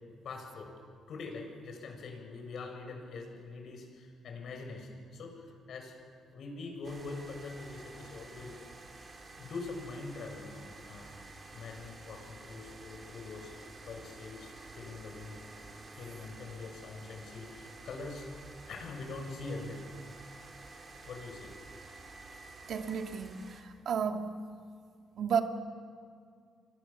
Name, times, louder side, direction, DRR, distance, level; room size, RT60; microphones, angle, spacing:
voice 1, 0.2-0.7 1.1-5.9 6.3-8.6 9.4-11.2 11.5-15.4 15.9-18.3 18.7-19.9 21.0-21.5, left 3 dB, 65° left, 7.1 m, -43 dB
sound 1, 6.8-23.6, right 3 dB, 35° right, 5.1 m, -51 dB
voice 2, 22.7-24.3 25.2-25.4, right 7 dB, 65° right, 2.2 m, -32 dB
29.5 x 24.5 x 7.3 m
cardioid pair, 90°, 0 cm